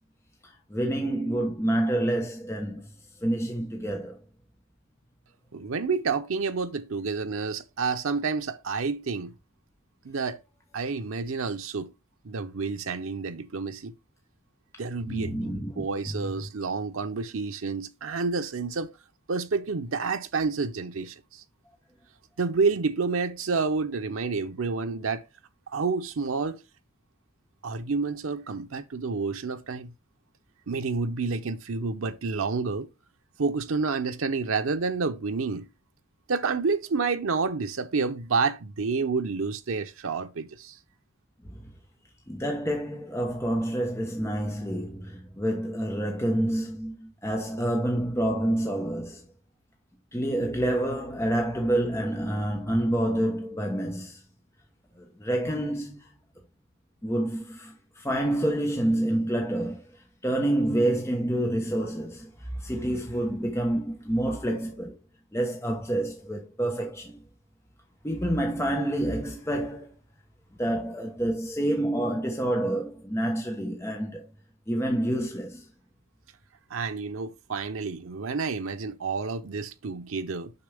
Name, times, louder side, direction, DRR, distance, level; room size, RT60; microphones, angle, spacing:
voice 1, 0.7-2.9 3.2-4.2 15.0-15.8 41.4-41.6 42.3-49.3 50.1-54.2 55.0-56.1 57.0-59.8 60.2-65.0 65.3-67.2 68.0-69.9 70.6-74.3 74.7-75.6, right 1 dB, 15° left, 1.0 m, -28 dB
voice 2, 5.5-9.3 10.0-10.4 10.7-11.9 12.2-13.9 14.8-18.9 19.3-21.4 22.4-25.2 25.7-26.6 27.6-29.9 30.7-32.9 33.4-35.7 36.3-40.8 76.7-80.5, right 4 dB, 90° right, 0.7 m, -29 dB
6.9 x 6.0 x 3.4 m
head